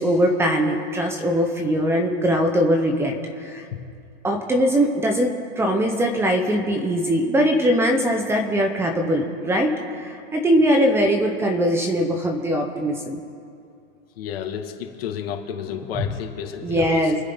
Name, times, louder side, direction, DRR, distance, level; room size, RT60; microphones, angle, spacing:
voice 1, 0.0-3.6 4.2-9.7 10.0-13.2 15.9-16.0 16.6-17.2, equal, 10° right, 3 dB, 1.1 m, -21 dB
voice 2, 14.2-17.1, left 9 dB, 70° left, 3 dB, 2.3 m, -31 dB
29.0 x 10.0 x 4.0 m, 2.3 s
supercardioid pair, 160°, 30 cm